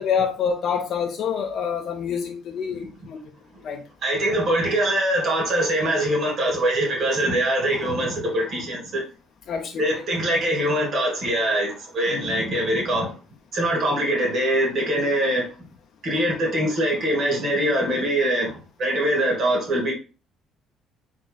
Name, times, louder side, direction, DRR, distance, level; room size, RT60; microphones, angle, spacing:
voice 1, 0.0-3.3 3.6-3.8 9.5-9.8 12.1-12.3, left 7 dB, 60° left, 0.7 m, -27 dB
voice 2, 4.0-9.0 9.8-13.2 13.5-15.5 16.0-19.9, right 1 dB, 60° right, 2.3 m, -23 dB
4.6 x 3.9 x 2.2 m
hypercardioid pair, 60°, 0 cm